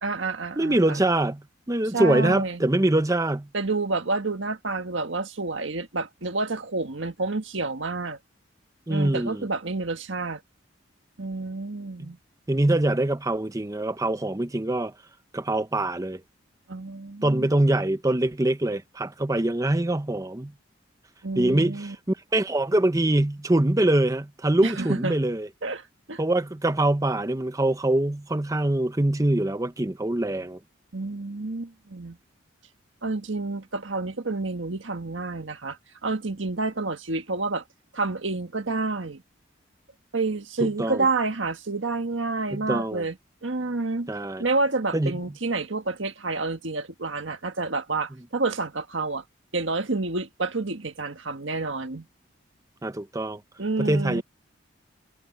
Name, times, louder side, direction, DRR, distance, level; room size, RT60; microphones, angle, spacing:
voice 1, 0.0-1.0 1.9-2.6 3.5-8.2 8.9-10.4 11.2-12.2 16.7-17.5 21.2-21.9 24.6-25.2 25.6-26.2 30.9-32.2 33.0-37.6 37.9-39.2 40.1-43.1 43.4-44.1 44.4-49.2 49.5-52.1 53.6-54.2, right 3 dB, 70° right, 1.6 m, -29 dB
voice 2, 0.6-3.5 8.9-9.4 12.0-12.1 12.5-14.9 15.3-16.2 17.2-20.5 21.4-25.5 26.2-30.6 40.6-41.1 42.5-43.0 44.1-44.4 44.9-45.1 52.8-53.4 53.8-54.2, right 1 dB, 15° right, 0.7 m, -24 dB
head